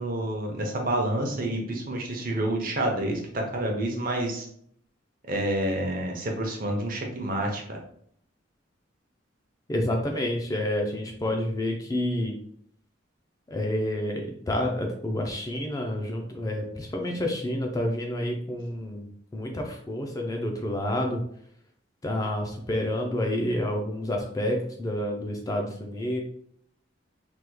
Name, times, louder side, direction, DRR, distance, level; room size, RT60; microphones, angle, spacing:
voice 1, 0.0-4.5 5.3-7.6, right 1 dB, 45° right, 2 dB, 0.7 m, -28 dB
voice 2, 9.7-12.3 13.5-14.2 14.5-19.1 19.3-21.2 22.0-26.2, left 1 dB, 20° left, 1 dB, 0.4 m, -29 dB
3.4 x 3.0 x 2.2 m, 0.65 s
head